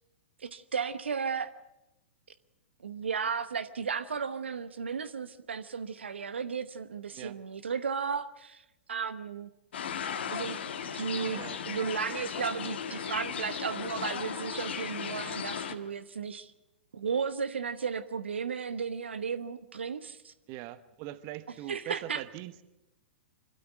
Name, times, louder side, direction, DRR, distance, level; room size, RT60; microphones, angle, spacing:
voice 1, 0.4-1.5 2.8-8.6 8.9-9.5 10.3-10.6 10.9-11.4 11.7-16.5 16.9-20.3 21.7-22.2, right 6 dB, 75° right, 13 dB, 1.0 m, -34 dB
sound 1, 9.7-15.7, left 7 dB, 65° left, 1.6 m, -36 dB
voice 2, 20.5-22.6, right 15 dB, 40° right, 14 dB, 1.0 m, -42 dB
24.5 x 13.0 x 9.3 m, 0.97 s
figure-of-eight pair, 110°, 6 cm